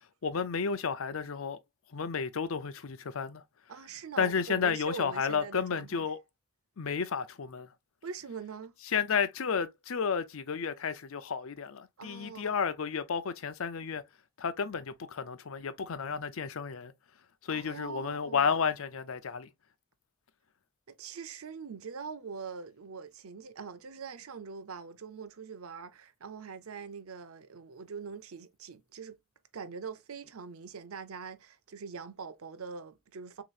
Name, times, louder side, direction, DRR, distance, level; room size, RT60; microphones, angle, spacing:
voice 1, 0.2-1.6 1.9-3.4 4.2-6.2 6.8-7.7 8.9-14.0 14.4-16.9 17.4-19.5, left 6 dB, 70° left, 0.6 m, -32 dB
voice 2, 3.7-6.1 8.0-8.7 12.0-12.7 17.5-18.5 20.9-29.2 29.5-33.4, right 5 dB, 90° right, 0.6 m, -43 dB
6.2 x 3.0 x 2.4 m
head